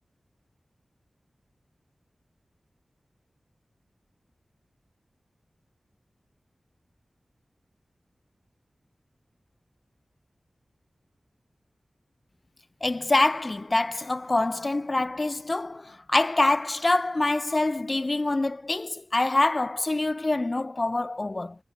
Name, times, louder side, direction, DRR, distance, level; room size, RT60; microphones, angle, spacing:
voice 1, 12.8-21.6, left 2 dB, 35° left, 1.0 m, -25 dB
wide cardioid pair, 80°, 0 cm